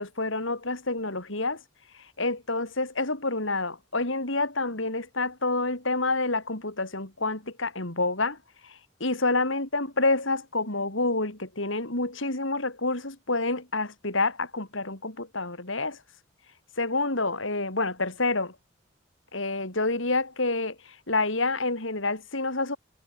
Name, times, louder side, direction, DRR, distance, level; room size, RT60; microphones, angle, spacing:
voice 1, 0.0-1.6 2.2-8.4 9.0-16.0 16.8-18.5 19.3-22.8, left 2 dB, 65° left, 4.2 m, -28 dB
head